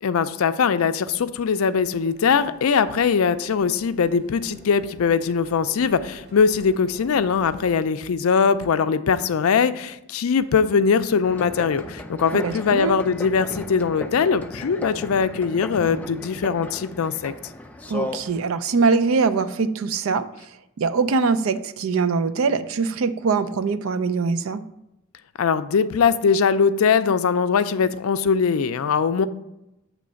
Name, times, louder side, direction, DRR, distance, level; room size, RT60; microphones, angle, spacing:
voice 1, 0.0-17.3 25.4-29.3, left 6 dB, 85° left, 12 dB, 0.4 m, -21 dB
sound 1, 1.2-7.8, right 1 dB, 50° right, 1.0 m, -48 dB
sound 2, 11.2-18.4, left 1 dB, 5° left, 0.4 m, -36 dB
voice 2, 12.3-13.0 17.9-20.3 20.8-24.6, right 4 dB, 70° right, 12 dB, 0.4 m, -22 dB
7.6 x 3.1 x 6.3 m, 0.88 s
head